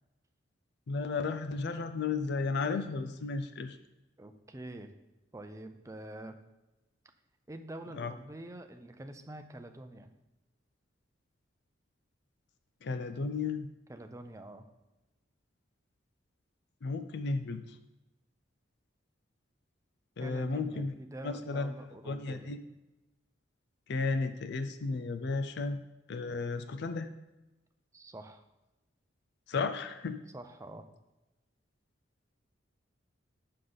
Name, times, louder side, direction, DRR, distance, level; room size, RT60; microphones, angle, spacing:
voice 1, 0.9-3.8 7.9-8.1 12.8-13.7 16.8-17.8 20.2-20.9 21.2-21.7 22.1-22.6 23.9-25.8 26.1-27.1 29.5-30.2, left 4 dB, 60° left, 10 dB, 0.5 m, -33 dB
voice 2, 4.2-4.9 5.3-6.4 7.5-10.1 13.9-14.7 20.2-22.5 27.9-28.4 30.3-30.8, right 1 dB, 15° right, 6 dB, 0.5 m, -46 dB
7.7 x 6.5 x 3.9 m, 1.0 s
head